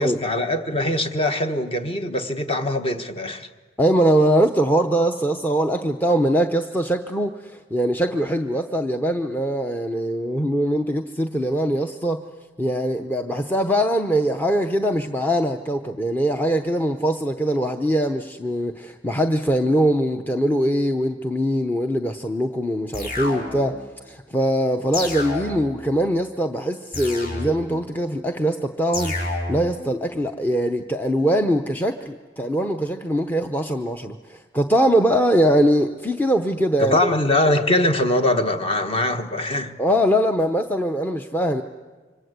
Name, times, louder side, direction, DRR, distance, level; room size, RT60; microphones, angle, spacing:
voice 1, 0.0-3.5 36.8-39.7, left 1 dB, 30° left, 7 dB, 1.3 m, -22 dB
voice 2, 3.8-12.2 12.6-23.8 24.1-37.0 39.8-41.6, equal, 10° left, 5 dB, 0.7 m, -22 dB
sound 1, 22.9-23.8 24.9-25.8 26.9-27.8 28.9-29.8, left 2 dB, 50° left, 4.8 m, -30 dB
26.5 x 25.0 x 8.1 m, 1.4 s
head